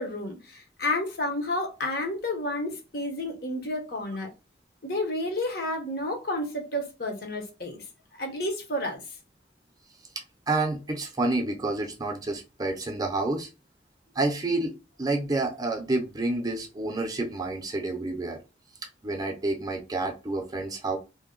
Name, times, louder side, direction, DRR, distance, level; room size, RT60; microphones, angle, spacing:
voice 1, 0.0-4.3 4.8-7.8 8.2-9.0, left 1 dB, 55° left, 0.9 m, -31 dB
voice 2, 10.5-13.5 14.1-14.7 15.0-18.4 19.0-21.0, right 2 dB, 20° right, 0.5 m, -29 dB
2.7 x 2.1 x 3.7 m
head